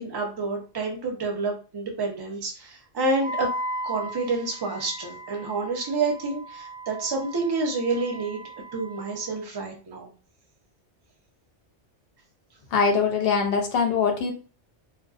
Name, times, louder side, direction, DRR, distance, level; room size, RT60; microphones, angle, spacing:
voice 1, 0.0-3.5 3.8-8.4 8.7-10.1, right 3 dB, 35° right, 0 dB, 0.4 m, -28 dB
Wind instrument woodwind instrument, 3.2-9.3, right 1 dB, 80° right, 0.9 m, -37 dB
voice 2, 12.7-14.3, left 5 dB, 65° left, 3 dB, 0.7 m, -22 dB
2.4 x 2.2 x 2.3 m, 0.36 s
omnidirectional pair, 1.2 m